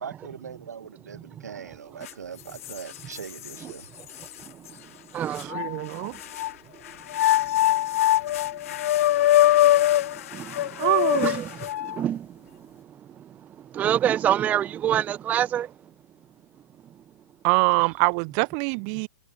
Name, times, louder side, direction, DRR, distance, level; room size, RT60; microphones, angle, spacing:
voice 1, 0.0-3.9, right 7 dB, 85° right, 2.0 m, -40 dB
voice 2, 1.3-2.1 3.6-6.3 7.2-7.8 8.7-8.8 9.7-10.9 11.1-15.9 16.9-17.0, right 10 dB, 20° right, 0.4 m, -30 dB
sound 1, 2.1-2.2 2.6-3.6 4.2-4.3 5.4-6.5 7.1-12.0, left 13 dB, 60° left, 1.1 m, -22 dB
voice 3, 5.5-6.1 10.8-11.3 17.4-19.1, right 40 dB or more, 40° right, 1.3 m, -24 dB
hypercardioid pair, 130°, 9 cm